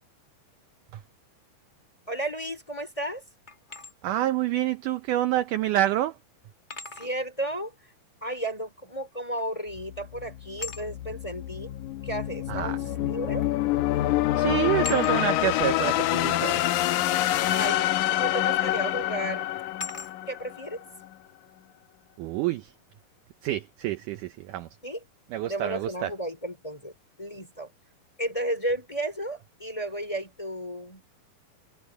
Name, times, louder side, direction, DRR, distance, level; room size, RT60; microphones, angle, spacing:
voice 1, 2.1-3.2 6.9-7.7 8.2-11.8 12.0-12.8 13.1-13.4 17.5-19.5 20.3-20.8 24.8-25.0 25.5-26.9 27.2-27.7 28.2-31.0, right 1 dB, 10° left, 2.8 m, -33 dB
sound 1, 3.5-3.9 5.4-5.5 6.7-7.1 9.4-9.7 10.6-10.9 12.1-12.2 13.4-13.6 13.9-14.2 14.8-15.2 17.6-17.9 18.7-18.8 19.8-20.1, left 3 dB, 50° left, 0.5 m, -39 dB
voice 2, 4.0-6.2 12.5-12.8 14.4-16.6 22.2-22.7 23.4-24.7 25.3-26.1, right 13 dB, 75° right, 2.0 m, -27 dB
sound 2, 9.7-20.8, left 14 dB, 75° left, 1.9 m, -27 dB
omnidirectional pair, 4.2 m